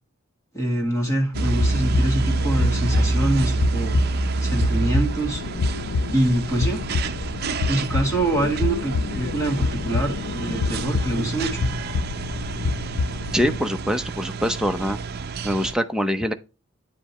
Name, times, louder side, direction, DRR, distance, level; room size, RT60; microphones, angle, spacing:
voice 1, 0.5-4.0 4.4-5.4 6.1-6.8 7.7-11.7, right 1 dB, 15° left, 1.9 m, -25 dB
sound 1, 1.3-13.6, left 4 dB, 85° left, 0.4 m, -28 dB
sound 2, 1.3-15.7, right 3 dB, 50° right, 0.6 m, -28 dB
voice 2, 13.3-15.0 15.4-16.3, equal, 5° right, 0.6 m, -24 dB
9.7 x 5.1 x 3.0 m
head